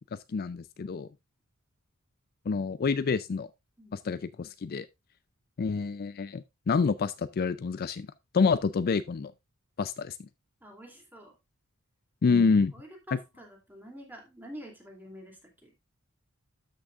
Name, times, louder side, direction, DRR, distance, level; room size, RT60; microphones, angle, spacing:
voice 1, 0.3-1.1 2.5-3.5 3.9-4.9 5.6-8.1 8.3-9.3 9.8-10.2 12.2-12.7 13.1-13.2, left 5 dB, 45° left, 0.4 m, -27 dB
voice 2, 3.8-4.2 10.6-11.3 12.7-15.8, equal, 10° right, 2.6 m, -48 dB
12.5 x 6.1 x 2.4 m
head